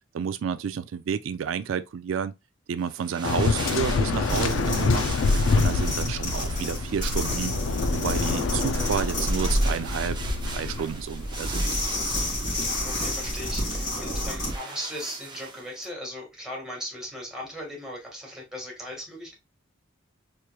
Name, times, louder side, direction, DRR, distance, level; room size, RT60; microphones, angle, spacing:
voice 1, 0.1-2.3 2.7-5.1 5.5-7.5 7.9-10.2 10.5-11.7, right 7 dB, 70° right, 0.3 m, -30 dB
sound 1, 2.8-15.9, right 4 dB, 25° right, 0.6 m, -42 dB
Waves surf, 3.2-10.9, left 4 dB, 70° left, 0.4 m, -26 dB
sound 2, 4.2-14.6, equal, 40° left, 2.3 m, -29 dB
voice 2, 12.8-19.3, equal, 5° right, 1.7 m, -38 dB
4.4 x 3.1 x 2.3 m
head